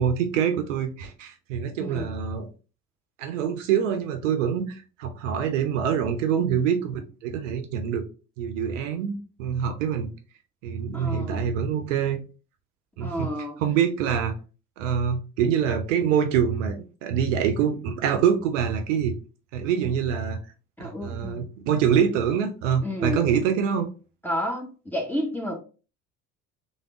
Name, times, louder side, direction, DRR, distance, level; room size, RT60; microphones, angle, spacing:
voice 1, 0.0-2.5 3.2-8.0 8.4-10.1 10.6-12.2 13.0-13.3 13.6-14.3 14.8-19.1 19.5-20.4 20.8-23.9, right 8 dB, 60° right, 7 dB, 0.6 m, -25 dB
voice 2, 1.8-2.1 10.9-11.4 13.0-13.6 20.8-21.4 22.8-23.2 24.2-25.5, equal, 5° left, 0 dB, 0.9 m, -30 dB
3.4 x 2.1 x 3.6 m, 0.34 s
figure-of-eight pair, 65°, 43 cm